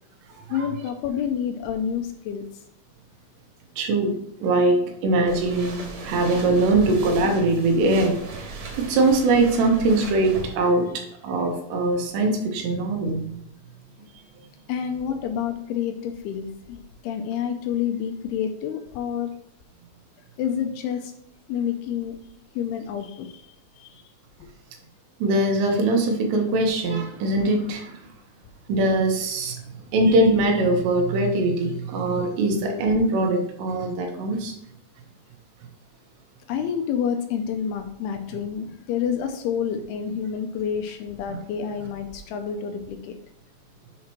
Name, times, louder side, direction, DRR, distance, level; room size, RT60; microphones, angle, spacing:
voice 1, 0.5-2.5 14.7-16.8 17.0-19.3 20.4-21.1 21.5-22.2 22.6-23.5 23.8-23.9 36.5-43.1, left 8 dB, 80° left, 5 dB, 2.4 m, -28 dB
voice 2, 3.8-4.8 5.0-8.1 8.4-10.8 11.2-13.4 25.2-28.0 28.7-29.6 29.9-34.5 41.3-41.4, right 2 dB, 90° right, 2 dB, 3.3 m, -22 dB
sound 1, 5.3-10.6, right 3 dB, 65° right, 2.6 m, -36 dB
7.3 x 3.0 x 5.8 m, 0.72 s
omnidirectional pair, 4.9 m